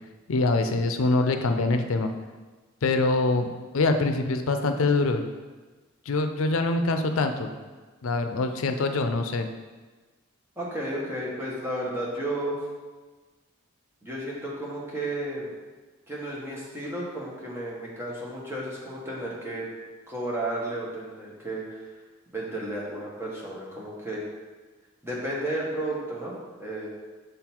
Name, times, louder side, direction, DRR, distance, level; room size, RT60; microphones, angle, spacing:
voice 1, 0.3-2.1 2.8-3.5 3.7-5.2 6.1-7.5 8.0-9.5, left 3 dB, 90° left, 7 dB, 0.5 m, -24 dB
voice 2, 10.6-12.6 14.0-15.5 16.1-19.7 20.1-21.8 22.3-24.2 25.0-26.9, right 1 dB, 10° right, -5 dB, 1.3 m, -33 dB
6.7 x 3.9 x 4.4 m, 1.3 s
head